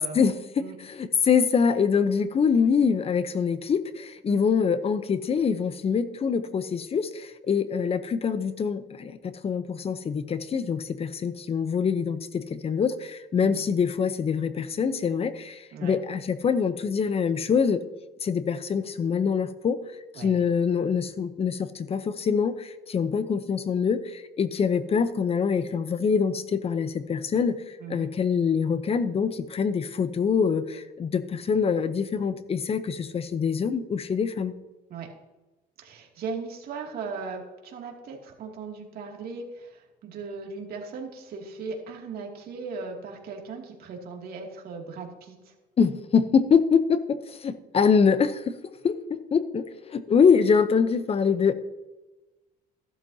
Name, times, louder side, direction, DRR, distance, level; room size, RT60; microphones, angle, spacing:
voice 1, 0.1-17.8 18.2-19.8 20.1-34.5 45.8-48.6 48.8-51.5, left 6 dB, 35° left, 13 dB, 0.8 m, -24 dB
voice 2, 35.8-45.5, right 4 dB, 65° right, 1 dB, 2.6 m, -38 dB
14.5 x 12.0 x 2.8 m, 1.1 s
cardioid pair, 110°, 17 cm